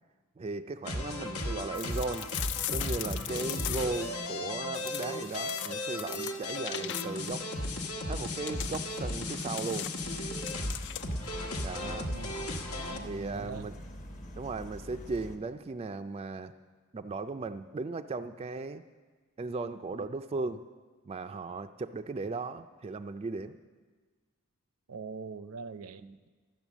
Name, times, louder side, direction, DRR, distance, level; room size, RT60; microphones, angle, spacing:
voice 1, 0.4-2.3 2.7-7.5 8.1-9.9 11.6-12.1 13.0-13.8 14.4-16.5 16.9-18.8 19.4-20.6 21.1-23.6 26.0-26.2, right 3 dB, 25° right, 8 dB, 0.3 m, -37 dB
sound 1, 0.8-13.0, left 1 dB, 85° left, 1.3 m, -35 dB
sound 2, 1.7-4.1 4.7-7.4 8.2-11.3, left 13 dB, 55° left, 0.3 m, -40 dB
sound 3, 10.0-15.4, equal, 35° left, 1.0 m, -45 dB
voice 2, 11.8-12.3 12.9-13.7 20.0-20.1 24.9-26.3, right 4 dB, 80° right, 12 dB, 0.5 m, -43 dB
12.5 x 9.4 x 7.2 m, 1.4 s
head